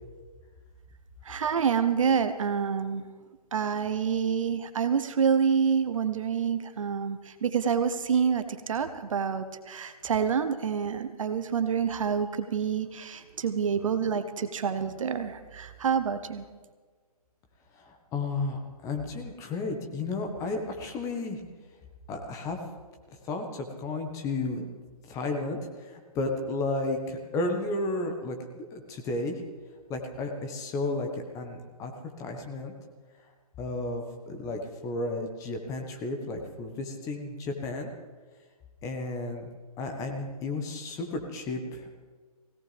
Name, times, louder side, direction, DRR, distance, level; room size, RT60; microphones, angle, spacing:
voice 1, 1.2-3.0 3.5-16.4, right 7 dB, 55° right, 10 dB, 1.0 m, -27 dB
voice 2, 17.7-21.4 22.1-22.6 23.2-24.7 25.0-29.4 29.9-31.9 32.2-32.7 33.6-37.9 38.8-39.5 39.8-41.9, left 2 dB, 15° left, 4 dB, 1.5 m, -33 dB
20.0 x 17.5 x 3.5 m, 1.4 s
figure-of-eight pair, 145°, 20 cm